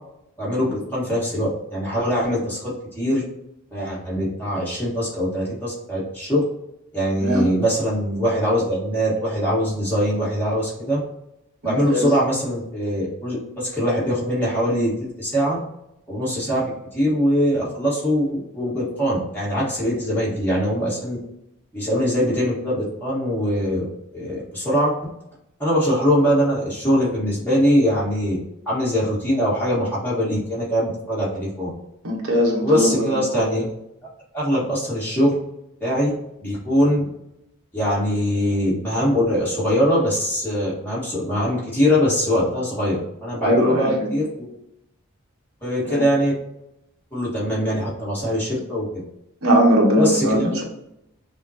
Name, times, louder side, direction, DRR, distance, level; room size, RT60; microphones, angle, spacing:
voice 1, 0.4-3.2 3.7-6.4 6.9-11.0 11.6-15.6 16.1-16.6 16.9-21.2 21.7-23.9 24.1-24.9 25.6-28.4 28.6-31.7 32.6-33.7 34.3-35.4 35.8-36.1 36.4-37.0 37.7-44.5 45.6-46.3 47.1-49.0 49.9-50.6, equal, 10° left, -8 dB, 1.4 m, -22 dB
voice 2, 11.6-12.1 32.0-33.1 43.4-44.1 45.9-46.0 49.4-50.6, equal, 80° right, -1 dB, 1.0 m, -20 dB
5.4 x 2.2 x 2.7 m, 0.82 s
head